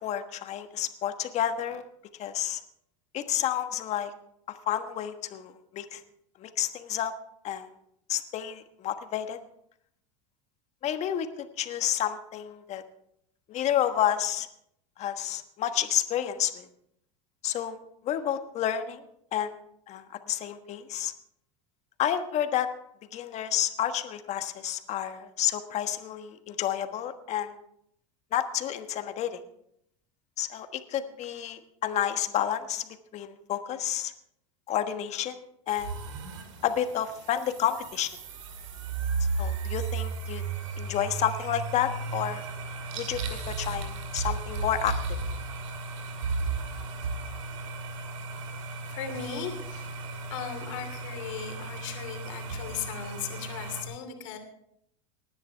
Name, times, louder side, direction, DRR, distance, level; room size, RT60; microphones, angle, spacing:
voice 1, 0.0-1.8 2.2-2.6 3.1-4.1 4.7-6.0 6.4-7.1 7.4-7.7 8.1-9.4 10.8-12.8 13.5-14.5 15.0-16.7 17.4-17.8 18.0-19.0 19.3-19.5 19.9-21.1 22.0-22.7 23.1-27.6 28.3-29.4 30.4-34.1 34.7-35.4 35.7-36.0 36.6-38.1 39.4-40.4 40.8-42.4 42.9-45.0, left 10 dB, 45° left, 8 dB, 1.4 m, -30 dB
sound 1, 35.7-53.8, right 4 dB, 90° right, 2.2 m, -35 dB
voice 2, 48.9-49.9 50.3-54.4, left 8 dB, 75° left, 5 dB, 2.8 m, -37 dB
19.0 x 10.5 x 3.4 m, 0.73 s
hypercardioid pair, 100°, 16 cm